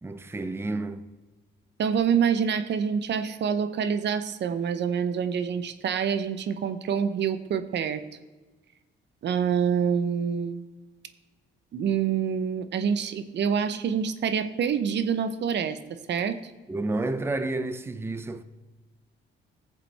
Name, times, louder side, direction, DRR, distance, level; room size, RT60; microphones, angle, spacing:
voice 1, 0.0-1.1 16.7-18.4, right 2 dB, 10° right, 0.6 m, -30 dB
voice 2, 1.8-8.0 9.2-10.6 11.7-16.4, right 7 dB, 60° right, 0.8 m, -26 dB
14.5 x 7.5 x 3.4 m
cardioid pair, 90°, 20 cm